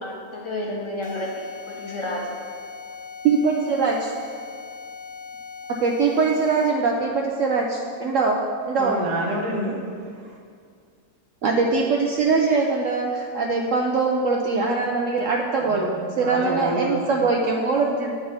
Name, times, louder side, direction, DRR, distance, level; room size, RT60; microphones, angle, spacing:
voice 1, 0.0-2.2, left 1 dB, 20° left, -3 dB, 0.9 m, -31 dB
sound 1, 1.0-6.9, left 5 dB, 70° left, 0.6 m, -39 dB
voice 2, 3.2-4.1 5.8-8.4 8.7-9.0 11.4-15.9 16.2-18.1, right 4 dB, 65° right, 0 dB, 0.8 m, -22 dB
voice 3, 8.8-10.4 15.6-15.9 16.2-17.1, right 1 dB, 85° right, -1 dB, 1.7 m, -28 dB
8.8 x 3.9 x 5.5 m, 2.1 s
omnidirectional pair, 1.7 m